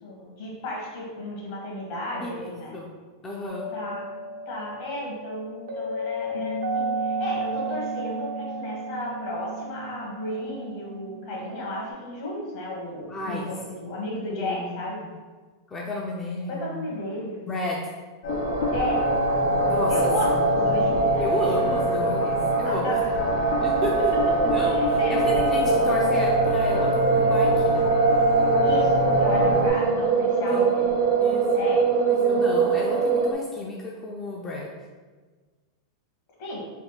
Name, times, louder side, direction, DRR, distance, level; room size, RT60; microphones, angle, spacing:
voice 1, 0.0-2.8 3.7-4.1 4.4-15.0 16.5-17.4 18.7-19.1 19.9-21.3 21.7-21.8 22.6-23.4 24.6-25.2 25.6-25.9 28.6-31.1 31.5-31.8 36.4-36.6, left 1 dB, 60° left, -3 dB, 1.4 m, -33 dB
voice 2, 2.2-2.9 3.2-3.7 13.1-13.5 14.3-14.8 15.7-16.9 17.5-17.8 19.7-20.1 21.2-23.2 23.6-24.1 24.5-27.9 30.5-30.8 31.2-31.4 32.1-34.7, left 1 dB, 15° left, -2 dB, 0.4 m, -32 dB
sound 1, 3.5-11.9, right 2 dB, 90° right, 0.7 m, -33 dB
sound 2, 18.2-29.7, equal, 75° left, 0.7 m, -25 dB
sound 3, 18.3-33.3, right 4 dB, 50° right, 0.5 m, -23 dB
3.6 x 2.3 x 4.0 m, 1.4 s
supercardioid pair, 135°, 2 cm